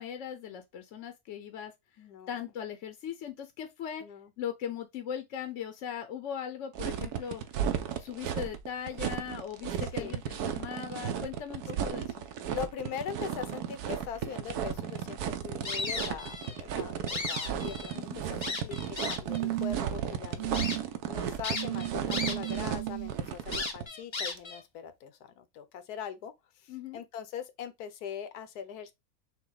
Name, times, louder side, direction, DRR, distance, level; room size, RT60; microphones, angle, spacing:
voice 1, 0.0-1.7 2.3-4.0 4.4-7.4 8.0-12.2 17.9-18.2 26.7-27.0, left 8 dB, 65° left, 0.9 m, -39 dB
voice 2, 2.0-2.4 4.0-4.3 9.9-10.1 12.5-28.9, left 8 dB, 85° left, 1.3 m, -41 dB
sound 1, 6.8-23.8, right 9 dB, 85° right, 1.2 m, -34 dB
sound 2, 15.6-16.6 16.9-18.0 18.4-19.4 20.0-20.1 20.5-20.8 21.4-22.6 22.9-23.0 23.5-24.6, left 3 dB, 40° left, 0.4 m, -35 dB
sound 3, 18.0-18.6 19.3-20.0 20.4-20.8 21.5-23.1 24.4-24.5, right 17 dB, 70° right, 0.7 m, -35 dB
6.1 x 2.2 x 3.8 m
omnidirectional pair, 1.6 m